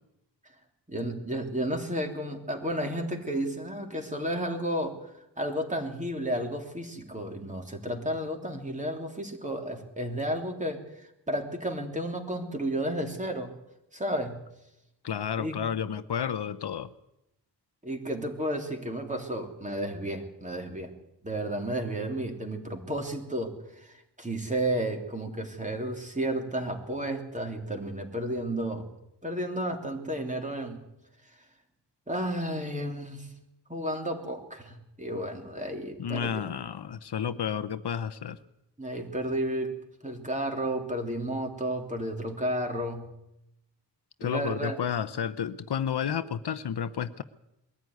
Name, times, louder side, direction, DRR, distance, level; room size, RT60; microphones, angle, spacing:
voice 1, 0.9-5.1 5.4-10.8 11.3-13.5 13.9-14.4 15.4-15.6 17.8-20.9 21.2-23.5 23.8-28.8 29.2-30.8 32.1-33.3 33.7-36.4 38.8-39.7 40.0-43.1 44.2-44.8, right 1 dB, 15° right, 3 dB, 3.2 m, -32 dB
voice 2, 15.0-16.9 36.0-38.4 44.2-47.2, left 8 dB, 70° left, 12 dB, 0.9 m, -31 dB
21.5 x 14.0 x 9.5 m, 0.86 s
wide cardioid pair, 120°, 42 cm